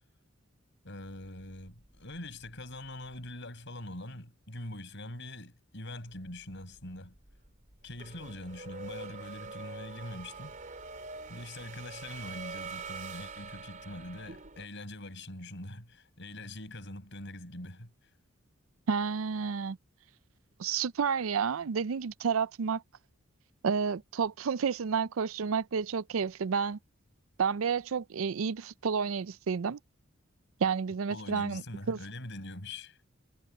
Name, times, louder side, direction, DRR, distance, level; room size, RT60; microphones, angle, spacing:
voice 1, 0.8-7.2 7.8-10.5 11.3-17.9 31.1-33.0, left 1 dB, 60° left, 6.8 m, -43 dB
sound 1, 1.0-3.3 6.1-14.7, right 4 dB, 40° right, 3.6 m, -45 dB
voice 2, 18.9-19.8 20.6-22.8 23.6-26.8 27.4-29.8 30.6-32.0, right 6 dB, 90° right, 0.5 m, -30 dB
head